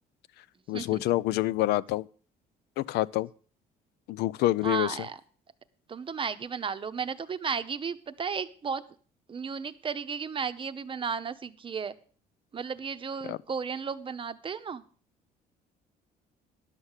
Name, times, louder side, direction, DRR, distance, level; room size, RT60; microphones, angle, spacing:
voice 1, 0.7-2.1 2.8-3.3 4.1-5.0 13.3-13.4, left 16 dB, 80° left, 0.5 m, -27 dB
voice 2, 4.6-5.2 5.9-8.8 9.3-11.9 12.5-14.8, right 6 dB, 30° right, 0.8 m, -34 dB
11.5 x 6.5 x 7.3 m
cardioid pair, 110°, 17 cm